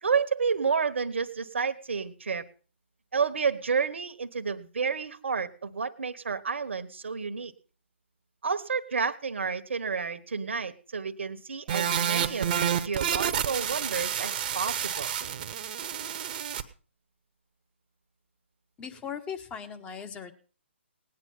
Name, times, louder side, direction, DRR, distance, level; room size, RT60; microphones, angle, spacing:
voice 1, 0.0-2.4 3.1-7.5 8.4-15.1, right 5 dB, 70° right, 8 dB, 1.2 m, -30 dB
sound 1, 11.7-16.6, right 9 dB, 45° right, 1.0 m, -29 dB
voice 2, 18.8-20.3, left 7 dB, 15° left, 7 dB, 1.3 m, -38 dB
18.0 x 9.9 x 5.5 m, 0.38 s
figure-of-eight pair, 140°, 7 cm